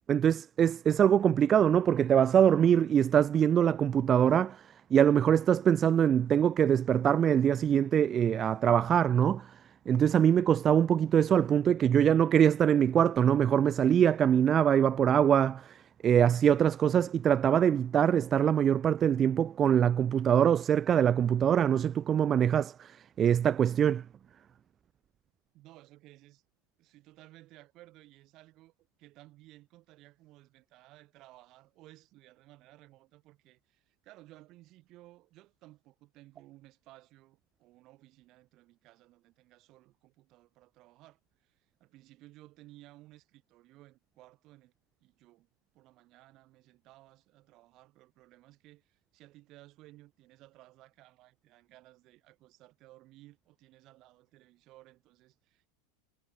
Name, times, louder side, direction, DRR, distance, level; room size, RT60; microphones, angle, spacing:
voice 1, 0.1-9.5 9.9-24.0, right 9 dB, 30° right, 0.3 m, -24 dB
voice 2, 25.5-26.4 26.8-44.7 45.0-45.5 45.7-55.7, right 17 dB, 45° right, 4.2 m, -57 dB
hypercardioid pair, 90°, 0 cm